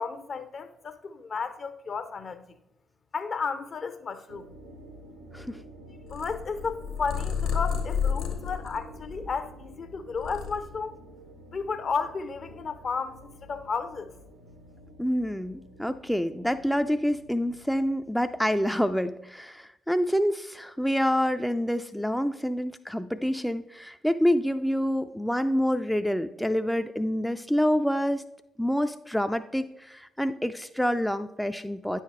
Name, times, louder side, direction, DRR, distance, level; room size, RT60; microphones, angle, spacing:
voice 1, 0.0-2.4 3.1-4.5 6.1-11.0 11.5-14.1, left 5 dB, 45° left, 0.7 m, -33 dB
sound 1, 4.3-19.0, right 1 dB, 85° right, 0.9 m, -50 dB
Purr, 6.1-9.6 10.0-11.1, left 6 dB, 65° left, 1.4 m, -31 dB
voice 2, 15.0-28.2 28.6-32.0, equal, 5° left, 0.4 m, -27 dB
9.7 x 5.7 x 3.1 m
figure-of-eight pair, 40°, 0 cm